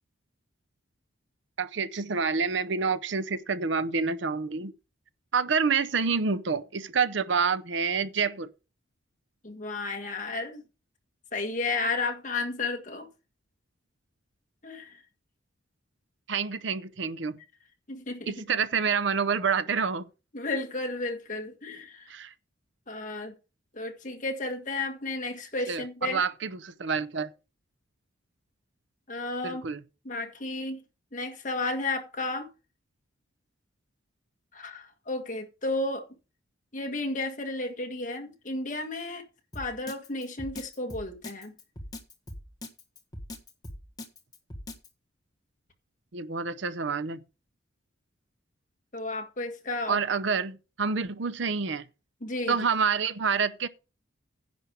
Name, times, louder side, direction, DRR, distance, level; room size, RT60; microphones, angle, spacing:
voice 1, 1.6-4.7 5.3-8.5 16.3-17.4 18.3-20.0 22.1-22.3 25.7-27.3 29.4-29.8 46.1-47.2 49.9-51.9 52.5-53.7, right 5 dB, 65° right, 0.7 m, -28 dB
voice 2, 9.4-10.6 11.3-13.1 14.6-15.0 17.9-18.6 20.3-22.1 22.9-23.3 23.7-26.2 29.1-29.6 30.0-30.8 31.1-32.5 34.5-36.0 36.7-39.2 39.5-41.5 48.9-50.0 52.2-52.6, left 2 dB, 40° left, 1.8 m, -33 dB
Drum kit, 39.5-44.9, left 1 dB, 20° left, 1.5 m, -40 dB
10.5 x 5.2 x 7.1 m
head